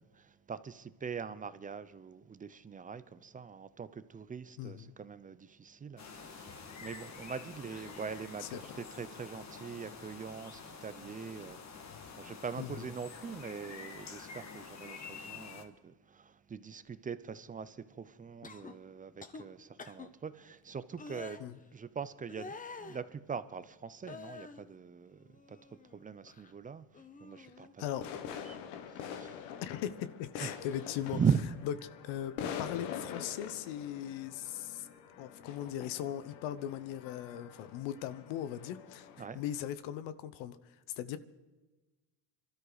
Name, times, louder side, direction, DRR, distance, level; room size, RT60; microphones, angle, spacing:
voice 1, 0.0-21.4 21.7-27.8 28.5-28.6 28.9-29.5 30.4-30.5 31.1-31.5 39.2-39.4, right 6 dB, 15° right, 0.6 m, -41 dB
voice 2, 4.6-4.9 8.4-8.6 12.6-12.8 21.4-21.6 27.8-28.1 29.6-31.2 32.0-34.9 35.2-39.1 39.3-41.2, left 11 dB, 70° left, 1.2 m, -39 dB
sound 1, 6.0-15.6, left 5 dB, 35° left, 1.9 m, -48 dB
sound 2, 18.4-18.7 19.2-19.4 19.8-20.1 21.0-21.4 22.3-23.0 24.0-24.6 25.1-26.0 26.2-26.5 26.9-27.7 29.0-29.2, left 4 dB, 15° left, 1.0 m, -48 dB
sound 3, 27.9-39.7, left 8 dB, 90° left, 1.6 m, -45 dB
26.0 x 13.0 x 4.1 m
cardioid pair, 125°, 48 cm